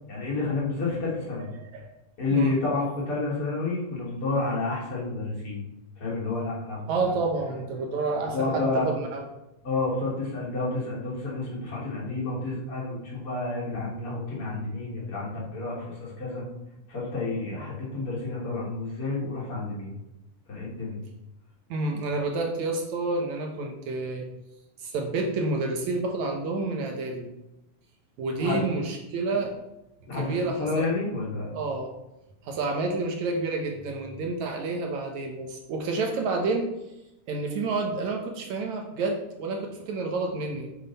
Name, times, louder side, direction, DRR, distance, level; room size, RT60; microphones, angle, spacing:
voice 1, 0.1-1.5 2.2-5.6 6.0-6.8 8.3-8.9 9.6-16.4 16.9-19.9 20.5-21.0 28.4-28.6 30.1-31.5, left 3 dB, 45° left, -5 dB, 3.6 m, -30 dB
voice 2, 1.5-1.9 2.3-2.5 4.4-4.5 6.9-9.2 21.7-24.3 24.8-27.3 28.2-29.5 30.2-30.9 31.5-31.9 32.4-36.7 37.3-40.7, right 3 dB, 70° right, 2 dB, 2.3 m, -29 dB
9.5 x 7.7 x 4.2 m, 0.91 s
omnidirectional pair, 3.7 m